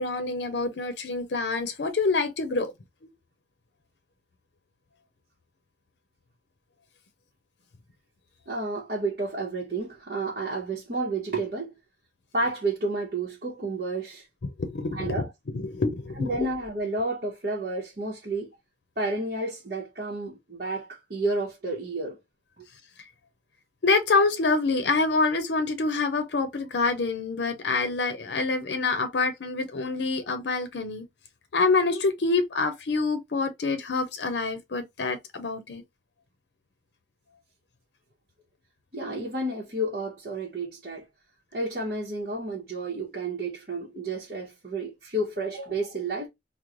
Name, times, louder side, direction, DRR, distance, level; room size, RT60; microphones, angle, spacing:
voice 1, 0.0-2.7 14.6-15.3 15.5-16.5 23.8-31.1 31.5-35.8, left 3 dB, 80° left, 0.6 m, -26 dB
voice 2, 8.5-11.7 12.3-14.3 14.9-15.3 16.2-18.5 19.0-22.2 22.6-22.7 38.9-41.1 41.5-46.3, right 2 dB, 50° right, 0.8 m, -31 dB
3.1 x 2.0 x 3.6 m
head